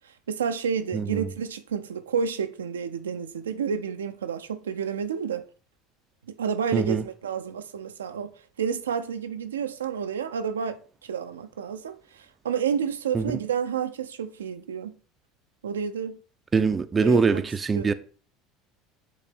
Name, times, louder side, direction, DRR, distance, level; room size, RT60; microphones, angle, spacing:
voice 1, 0.3-5.4 6.4-8.3 8.6-14.9 15.6-16.2 17.0-17.5 17.7-17.9, right 7 dB, 85° right, 0.4 m, -30 dB
voice 2, 0.9-1.3 6.7-7.0 13.1-13.2 16.5-17.9, right 5 dB, 25° right, 0.5 m, -23 dB
8.3 x 3.2 x 3.5 m
hypercardioid pair, 75°, 0 cm